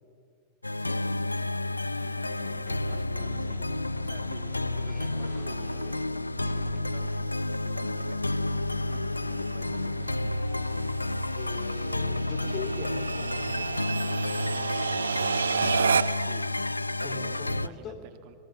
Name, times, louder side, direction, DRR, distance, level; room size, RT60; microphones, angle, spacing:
sound 1, 0.6-17.7, left 2 dB, 85° left, 0.5 m, -30 dB
voice 1, 0.8-1.4 2.8-3.6 4.0-8.7 9.2-10.4 16.1-16.6 17.0-18.4, right 9 dB, 45° right, 9 dB, 2.1 m, -51 dB
sound 2, 2.0-11.1, equal, 5° left, 2.1 m, -50 dB
sound 3, 6.1-16.4, right 6 dB, 70° right, 0.6 m, -33 dB
voice 2, 11.4-13.7 17.0-18.0, left 5 dB, 35° left, 8 dB, 3.5 m, -41 dB
27.0 x 23.0 x 7.1 m, 2.3 s
figure-of-eight pair, 90°, 0 cm